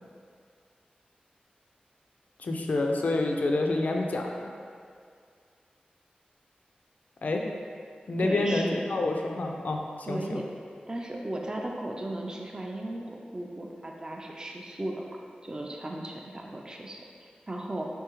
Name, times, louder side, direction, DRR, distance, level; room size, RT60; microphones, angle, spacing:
voice 1, 2.4-4.3 7.2-7.4 8.1-9.8 10.1-10.4, left 2 dB, 65° left, 1 dB, 0.4 m, -27 dB
voice 2, 8.2-8.8 10.1-10.5 10.9-15.2 15.4-17.9, right 1 dB, 25° right, 0 dB, 0.3 m, -36 dB
3.5 x 3.1 x 3.0 m, 2.2 s
wide cardioid pair, 70°, 3 cm